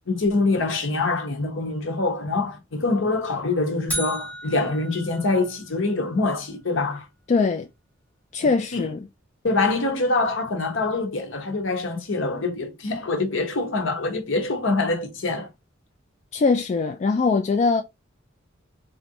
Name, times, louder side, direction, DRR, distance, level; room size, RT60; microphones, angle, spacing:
voice 1, 0.1-7.1 8.4-8.9 9.4-15.5, left 3 dB, 70° left, 1.0 m, -25 dB
sound 1, 3.9-6.0, right 1 dB, 10° left, 1.0 m, -34 dB
voice 2, 7.3-7.7 8.3-9.0 16.3-17.8, left 4 dB, 35° left, 0.3 m, -21 dB
3.2 x 2.5 x 2.8 m
head